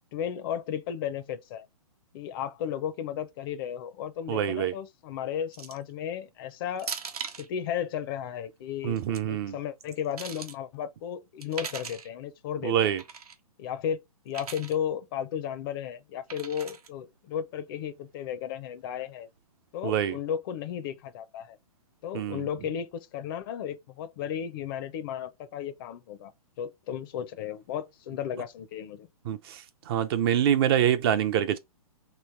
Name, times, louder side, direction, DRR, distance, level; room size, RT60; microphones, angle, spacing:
voice 1, 0.1-1.7 2.1-6.9 7.4-9.0 9.3-12.9 13.6-14.0 14.3-19.3 19.7-21.6 22.0-26.3 26.6-29.1, left 9 dB, 35° left, 0.5 m, -34 dB
voice 2, 4.3-4.7 8.8-9.6 12.6-13.0 19.8-20.2 22.1-22.5 29.3-29.6 29.9-31.6, right 10 dB, 40° right, 0.5 m, -25 dB
sound 1, 5.5-5.9 6.8-7.5 8.8-9.2 9.8-10.6 11.4-12.1 13.0-13.4 14.3-14.8 16.3-16.9, right 6 dB, 75° right, 0.9 m, -39 dB
3.1 x 3.1 x 4.5 m
hypercardioid pair, 130°, 19 cm